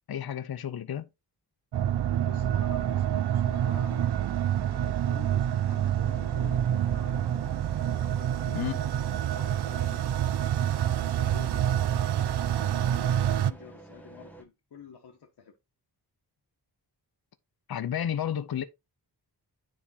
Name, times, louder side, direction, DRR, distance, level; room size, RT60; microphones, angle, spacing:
voice 1, 0.1-1.1 8.5-8.8 17.7-18.6, left 9 dB, 65° left, 0.7 m, -31 dB
sound 1, 1.7-13.5, right 10 dB, 80° right, 0.5 m, -27 dB
voice 2, 2.2-4.3 4.7-7.4 7.9-10.1 10.7-11.6 12.5-15.5, left 7 dB, 85° left, 1.2 m, -49 dB
sound 2, 6.0-14.4, right 2 dB, 5° left, 1.2 m, -50 dB
10.0 x 3.6 x 4.0 m
wide cardioid pair, 125°, 39 cm